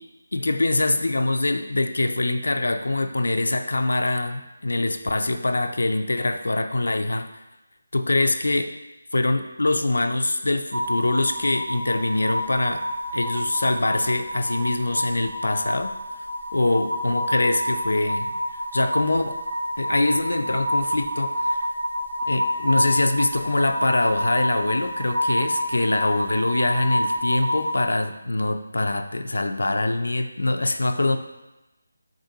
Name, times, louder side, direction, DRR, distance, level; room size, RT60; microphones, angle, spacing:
voice 1, 0.3-7.3 7.9-8.7 9.1-12.9 13.1-15.9 16.5-18.3 18.7-19.4 19.8-21.7 22.3-31.2, left 2 dB, 85° left, 8 dB, 0.3 m, -24 dB
sound 1, 10.7-27.8, equal, 45° right, 0.4 m, -28 dB
3.6 x 3.6 x 2.7 m, 0.99 s
figure-of-eight pair, 180°, 0 cm